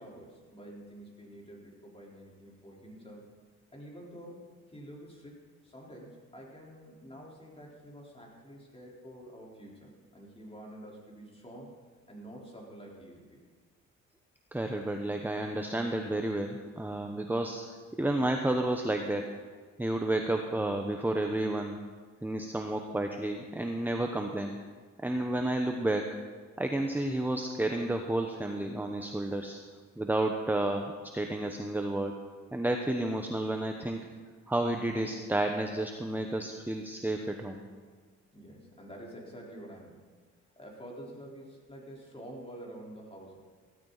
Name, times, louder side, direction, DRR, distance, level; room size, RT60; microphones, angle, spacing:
voice 1, 0.0-3.3 3.7-11.7 12.1-13.4 38.3-40.0 40.6-43.4, right 1 dB, 20° left, -3 dB, 4.1 m, -48 dB
voice 2, 14.5-19.3 19.8-21.9 22.2-24.6 25.0-26.1 26.6-29.6 30.0-32.2 32.5-34.0 34.5-37.6, right 1 dB, 5° right, 4 dB, 1.0 m, -31 dB
16.0 x 13.5 x 4.1 m, 1.5 s
cardioid pair, 90°, 30 cm